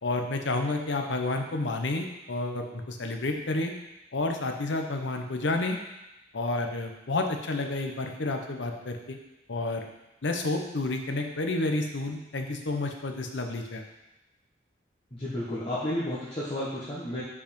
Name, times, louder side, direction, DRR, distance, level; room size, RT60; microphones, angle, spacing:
voice 1, 0.0-3.7 4.1-5.8 6.3-9.2 9.5-9.9 10.2-13.8, left 2 dB, 75° left, 4 dB, 0.8 m, -30 dB
voice 2, 15.1-17.2, left 1 dB, 30° left, -9 dB, 1.2 m, -32 dB
5.3 x 4.8 x 5.2 m, 0.94 s
head